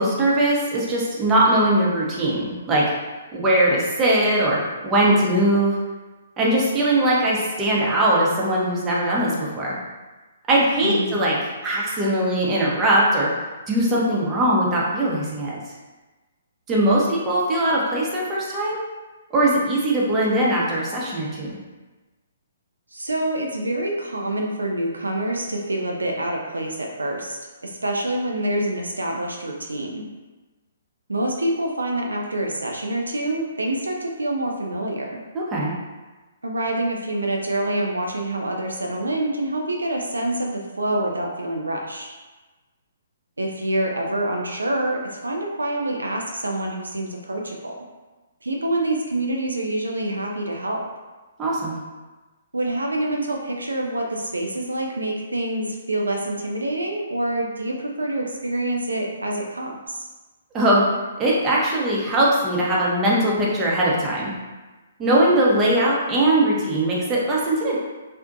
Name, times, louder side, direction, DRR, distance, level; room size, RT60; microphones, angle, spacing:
voice 1, 0.0-2.8 3.3-4.6 4.8-5.8 6.4-9.8 10.5-11.4 11.6-13.3 13.7-15.6 16.7-18.8 19.3-21.6 35.3-35.7 51.4-51.8 60.5-60.8 61.2-64.3 65.0-67.8, right 1 dB, 20° right, -5 dB, 0.5 m, -20 dB
voice 2, 10.8-11.2 22.9-30.0 31.1-35.2 36.4-42.1 43.4-47.8 48.4-50.8 52.5-60.1, right 1 dB, 75° right, 1 dB, 0.3 m, -26 dB
2.5 x 2.1 x 2.4 m, 1.2 s
figure-of-eight pair, 125°, 0 cm